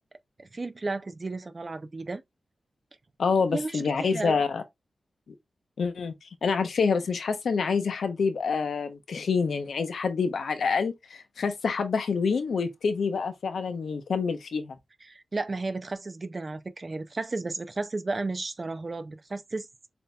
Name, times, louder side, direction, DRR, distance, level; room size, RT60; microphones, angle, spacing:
voice 1, 0.4-2.2 3.5-4.4 15.1-19.7, right 3 dB, 30° right, 0.4 m, -33 dB
voice 2, 3.2-4.6 5.8-6.1 6.4-14.8, left 5 dB, 75° left, 0.7 m, -27 dB
6.8 x 2.7 x 2.2 m
wide cardioid pair, 140°, 0 cm